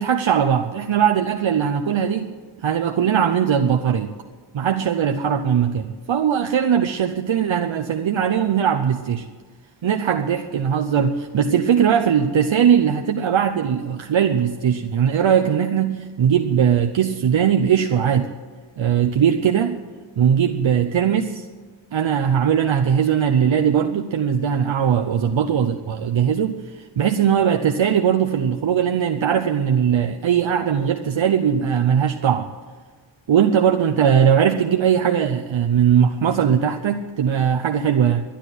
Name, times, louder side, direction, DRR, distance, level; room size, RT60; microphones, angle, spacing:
voice 1, 0.0-2.3 2.6-4.1 4.5-9.3 9.8-18.3 18.8-19.8 20.2-21.5 21.9-32.5 33.3-38.2, right 8 dB, 70° right, 4 dB, 0.8 m, -19 dB
12.0 x 10.0 x 9.2 m, 1.5 s
wide cardioid pair, 110°, 47 cm